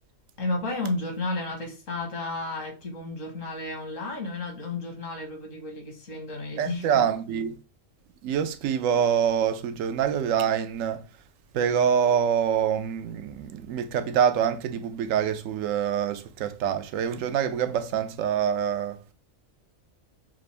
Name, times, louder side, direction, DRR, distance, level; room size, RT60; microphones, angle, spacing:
voice 1, 0.4-6.9, left 2 dB, 75° left, 1.7 m, -32 dB
voice 2, 6.6-7.6 8.2-11.0 11.5-19.0, right 8 dB, 80° right, 1.0 m, -25 dB
6.0 x 2.5 x 3.3 m
omnidirectional pair, 1.4 m